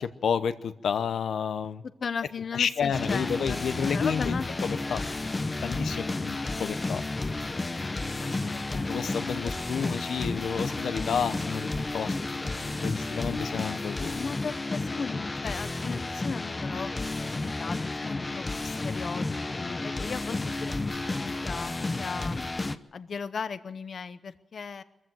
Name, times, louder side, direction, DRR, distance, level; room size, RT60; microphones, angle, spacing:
voice 1, 0.0-1.8 2.5-4.3 4.6-5.0 5.6-7.0 8.9-14.1, left 7 dB, 90° left, 11 dB, 0.9 m, -30 dB
voice 2, 2.0-4.5 8.1-9.2 14.1-22.4 22.9-24.8, left 5 dB, 55° left, 12 dB, 0.8 m, -37 dB
sound 1, 2.9-22.8, left 2 dB, 25° left, 0.8 m, -32 dB
23.0 x 15.0 x 7.8 m, 1.0 s
wide cardioid pair, 135°, 0 cm